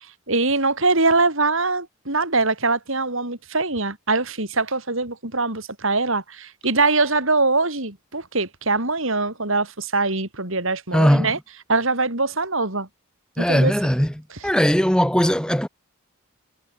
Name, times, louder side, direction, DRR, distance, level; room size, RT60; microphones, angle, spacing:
voice 1, 0.3-11.4 11.7-12.9 13.4-13.7, right 3 dB, 65° right, 4.9 m, -22 dB
voice 2, 10.9-11.3 13.4-14.1 14.4-15.7, equal, 5° left, 2.5 m, -19 dB
head